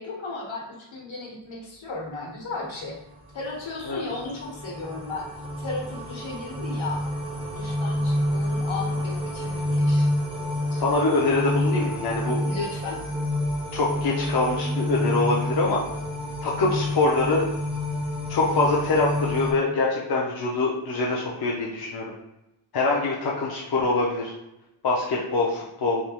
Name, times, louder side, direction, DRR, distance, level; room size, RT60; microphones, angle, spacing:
voice 1, 0.0-3.0 3.3-5.3 5.6-7.0 7.6-10.1 12.4-13.1, left 3 dB, 70° left, -3 dB, 1.2 m, -35 dB
sound 1, 3.3-19.5, left 1 dB, 10° right, 0.5 m, -28 dB
voice 2, 10.7-12.4 13.7-15.8 16.4-17.5 18.3-22.0 22.7-24.3 24.8-26.0, left 3 dB, 50° left, -3 dB, 0.6 m, -24 dB
3.5 x 2.7 x 2.9 m, 0.92 s
wide cardioid pair, 155°, 48 cm